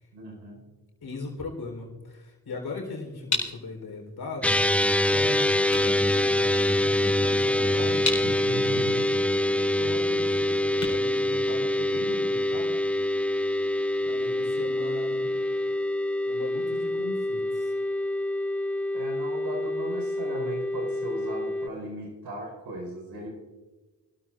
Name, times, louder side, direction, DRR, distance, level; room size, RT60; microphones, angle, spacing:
voice 1, 0.1-0.6 8.2-9.3 18.9-23.3, right 1 dB, 75° right, 0 dB, 4.9 m, -37 dB
voice 2, 1.0-4.6 5.1-8.1 9.7-12.8 14.0-15.7 16.3-17.7, left 3 dB, 65° left, 1 dB, 4.1 m, -39 dB
sound 1, 2.6-12.1, left 3 dB, 45° left, 4.4 m, -36 dB
sound 2, 4.4-21.7, left 1 dB, 5° left, 0.3 m, -25 dB
24.5 x 13.0 x 2.6 m, 1.2 s
supercardioid pair, 40°, 40 cm